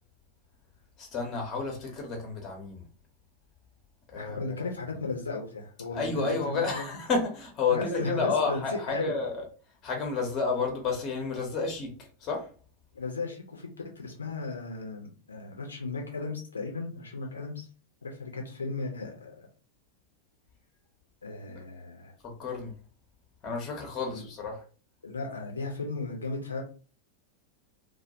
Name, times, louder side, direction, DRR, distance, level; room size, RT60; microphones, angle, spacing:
voice 1, 1.0-2.8 4.1-4.7 5.9-9.4 9.8-11.9 12.2-12.5 21.5-21.6 22.2-22.7 23.4-24.6, left 4 dB, 30° left, 0.7 m, -31 dB
voice 2, 4.1-6.8 7.7-9.1 12.9-13.7 14.0-17.7 18.0-19.5 21.2-22.1 24.1-24.2 25.0-26.6, left 3 dB, 75° left, 0.5 m, -35 dB
2.2 x 2.1 x 2.7 m
figure-of-eight pair, 90°, 0 cm